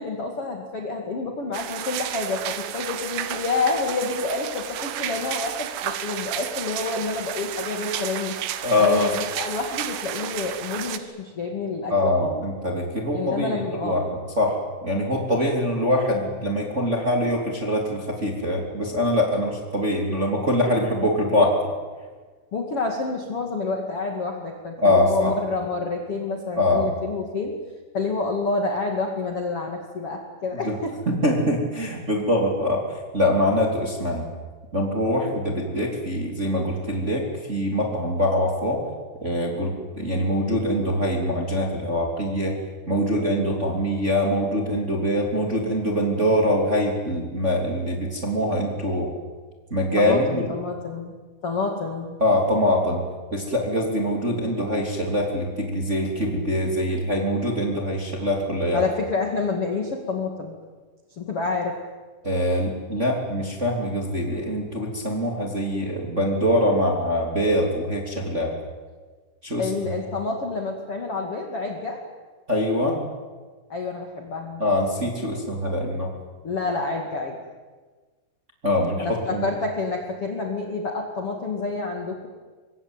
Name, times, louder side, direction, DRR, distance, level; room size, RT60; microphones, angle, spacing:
voice 1, 0.0-8.3 8.8-12.4 13.1-14.2 22.5-27.5 27.9-30.9 50.0-51.1 51.4-52.2 58.7-60.6 61.2-61.8 69.6-72.0 73.7-74.6 76.4-77.4 79.0-82.3, left 3 dB, 45° left, 2 dB, 2.1 m, -28 dB
sound 1, 1.5-11.0, right 11 dB, 80° right, 3.8 m, -32 dB
voice 2, 8.6-9.1 11.9-14.0 14.4-14.6 14.8-21.6 24.8-25.3 26.6-26.9 30.5-30.8 31.1-32.8 33.1-34.3 34.7-38.8 39.2-42.5 42.9-49.1 49.7-50.5 52.2-53.0 53.3-58.8 62.2-68.5 69.4-69.8 72.5-73.0 74.6-76.1 78.6-79.4, left 1 dB, 20° right, 1 dB, 2.6 m, -23 dB
25.5 x 22.0 x 9.1 m, 1.4 s
omnidirectional pair, 5.7 m